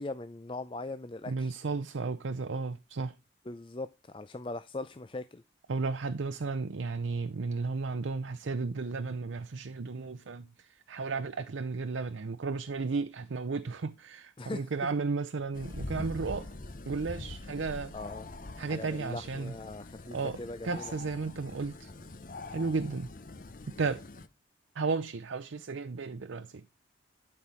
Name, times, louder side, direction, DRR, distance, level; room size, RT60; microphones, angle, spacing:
voice 1, 0.0-1.6 3.4-5.4 14.4-15.0 17.9-18.3 18.7-20.9, left 2 dB, 25° left, 0.5 m, -40 dB
voice 2, 1.3-3.1 5.7-10.5 10.9-16.5 16.9-17.9 18.6-19.5 20.1-20.4 20.6-21.9 22.5-23.1 23.8-24.0 24.8-26.5, right 4 dB, 90° right, 0.6 m, -33 dB
sound 1, 15.5-24.3, left 2 dB, 45° left, 0.8 m, -44 dB
12.0 x 4.7 x 5.6 m
head